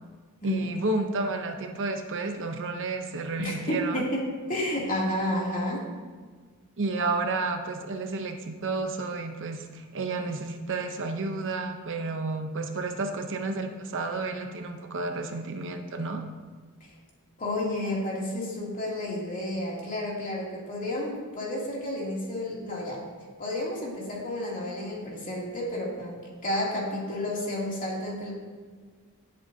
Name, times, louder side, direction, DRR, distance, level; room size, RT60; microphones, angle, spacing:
voice 1, 0.4-4.1 6.8-16.2, right 3 dB, 60° right, 5 dB, 0.8 m, -31 dB
voice 2, 3.4-4.2 4.5-5.8 16.8-16.9 17.4-23.0 23.4-28.3, left 1 dB, 35° left, -4 dB, 2.7 m, -31 dB
17.0 x 7.8 x 2.8 m, 1.5 s
head